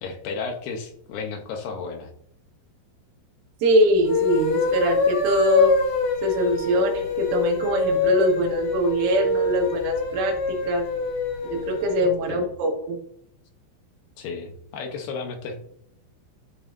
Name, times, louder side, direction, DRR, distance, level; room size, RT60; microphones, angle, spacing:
voice 1, 0.0-2.1 12.3-12.5 14.2-15.6, left 4 dB, 75° left, 3 dB, 2.4 m, -33 dB
voice 2, 3.6-5.8 6.2-10.9 11.5-13.0, right 1 dB, 80° right, 1 dB, 4.0 m, -23 dB
sound 1, 4.0-12.1, left 4 dB, 55° left, 2.5 m, -24 dB
13.5 x 5.6 x 2.7 m, 0.70 s
omnidirectional pair, 5.9 m